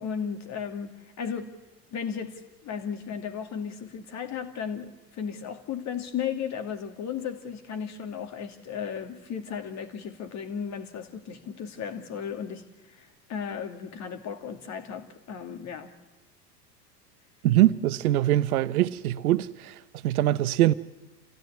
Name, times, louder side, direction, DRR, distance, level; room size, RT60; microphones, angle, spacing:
voice 1, 0.0-1.5 1.9-15.9, left 7 dB, 35° left, 2.5 m, -35 dB
voice 2, 17.4-19.7 20.0-20.7, right 14 dB, 60° right, 1.0 m, -23 dB
28.0 x 16.0 x 9.9 m
figure-of-eight pair, 85°, 49 cm